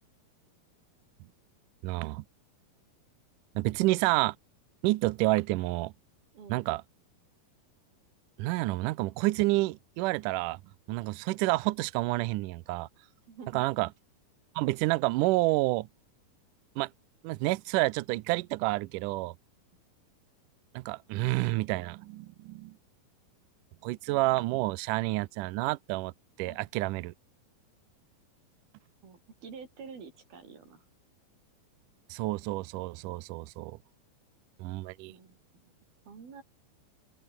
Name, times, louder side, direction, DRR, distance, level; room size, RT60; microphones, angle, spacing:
voice 1, 1.8-2.2 3.6-4.4 4.8-5.9 6.5-6.8 8.4-10.6 10.9-12.9 13.5-13.9 14.6-15.9 16.8-16.9 17.2-19.3 20.7-22.7 23.8-26.1 26.4-27.1 32.1-33.8 34.6-35.1, right 20 dB, 90° right, 1.9 m, -29 dB
voice 2, 6.3-6.7 13.3-13.9 26.5-26.6 29.0-30.9 35.1-35.7 36.1-36.4, right 5 dB, 75° right, 6.9 m, -48 dB
open air
omnidirectional pair, 4.4 m